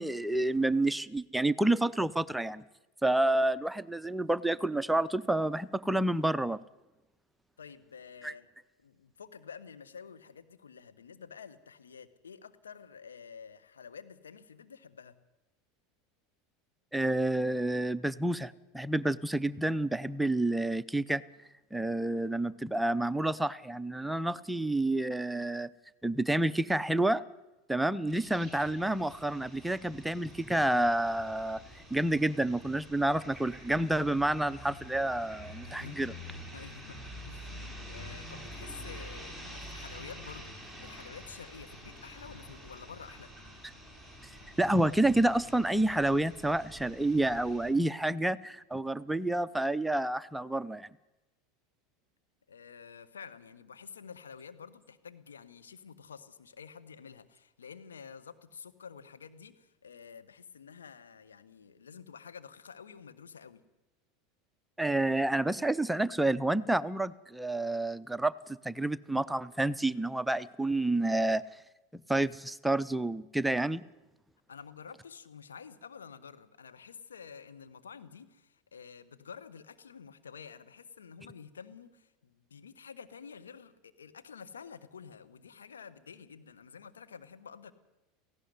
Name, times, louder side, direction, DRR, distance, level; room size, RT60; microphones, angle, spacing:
voice 1, 0.0-2.6 3.0-6.6 8.2-8.3 16.9-21.2 21.7-25.7 26.0-27.2 27.7-31.6 31.9-36.1 44.6-50.9 64.8-71.4 71.9-73.8, right 1 dB, 5° right, 14 dB, 0.6 m, -29 dB
voice 2, 7.6-8.5 8.8-15.2 35.6-36.1 36.5-37.0 37.3-43.3 52.5-63.6 74.5-87.7, left 6 dB, 80° left, 10 dB, 1.2 m, -49 dB
sound 1, 28.1-47.7, equal, 15° left, 7.0 m, -47 dB
17.5 x 15.5 x 9.6 m, 1.0 s
figure-of-eight pair, 80°, 0 cm